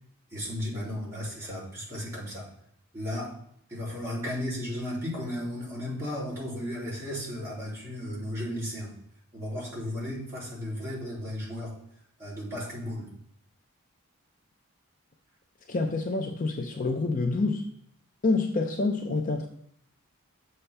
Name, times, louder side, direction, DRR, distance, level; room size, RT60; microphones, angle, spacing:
voice 1, 0.3-2.5 2.9-3.3 3.7-8.9 9.3-11.7 12.2-13.1, left 1 dB, 15° right, -8 dB, 2.8 m, -34 dB
voice 2, 15.7-17.6 18.2-19.5, left 3 dB, 35° left, 4 dB, 0.5 m, -27 dB
7.1 x 7.0 x 3.4 m, 0.70 s
head